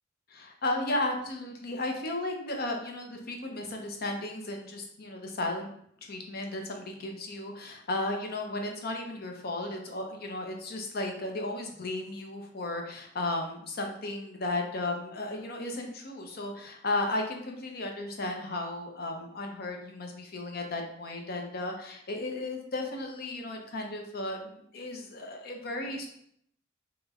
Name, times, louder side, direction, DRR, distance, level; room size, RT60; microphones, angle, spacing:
voice 1, 0.3-5.7 6.0-26.1, left 2 dB, 50° left, 2 dB, 0.6 m, -34 dB
3.0 x 3.0 x 3.5 m, 0.69 s
head